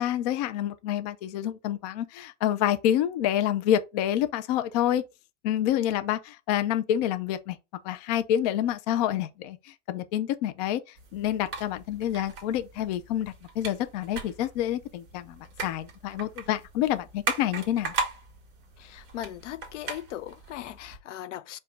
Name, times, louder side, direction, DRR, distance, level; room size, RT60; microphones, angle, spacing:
voice 1, 0.0-5.0 5.4-7.6 7.8-10.8 11.1-17.9, left 11 dB, 35° left, 0.4 m, -28 dB
sound 1, 11.0-21.0, right 4 dB, 35° right, 1.9 m, -38 dB
voice 2, 18.8-21.6, left 12 dB, 90° left, 0.6 m, -39 dB
4.8 x 2.3 x 4.5 m
supercardioid pair, 155°, 35 cm